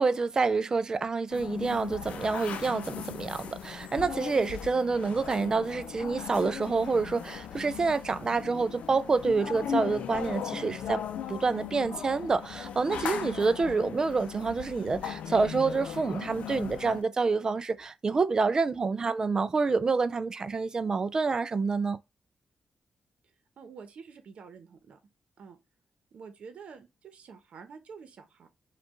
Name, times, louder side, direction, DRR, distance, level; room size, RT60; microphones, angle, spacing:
voice 1, 0.0-11.0 11.3-22.0, right 4 dB, 30° right, 0.4 m, -28 dB
sound 1, 1.3-17.0, left 8 dB, 80° left, 0.5 m, -38 dB
voice 2, 23.6-25.0 25.4-25.6 26.1-28.5, right 5 dB, 65° right, 0.9 m, -48 dB
5.1 x 2.4 x 3.7 m
cardioid pair, 120°, 2 cm